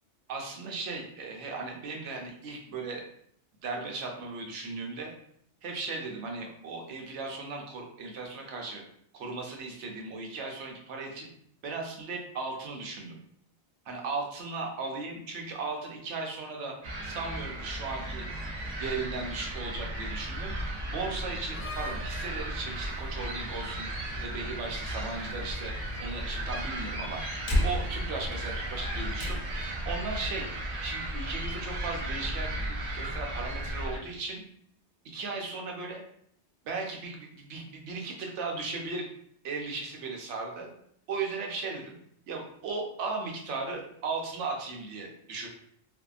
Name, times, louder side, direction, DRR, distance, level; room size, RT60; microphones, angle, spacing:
voice 1, 0.3-3.0 3.6-5.1 5.6-8.8 9.1-11.3 11.6-13.2 13.9-16.7 17.0-18.3 18.8-20.6 20.9-23.9 24.2-25.7 26.0-27.2 27.6-29.4 29.9-30.5 30.8-34.4 35.0-36.0 36.6-39.1 39.4-40.7 41.1-42.0 42.3-45.5, right 3 dB, 90° right, 1 dB, 0.9 m, -36 dB
sound 1, 16.8-34.0, right 1 dB, 55° right, 0.4 m, -35 dB
Slam, 21.3-29.8, left 1 dB, 55° left, 0.6 m, -36 dB
2.6 x 2.1 x 2.3 m, 0.67 s
omnidirectional pair, 1.2 m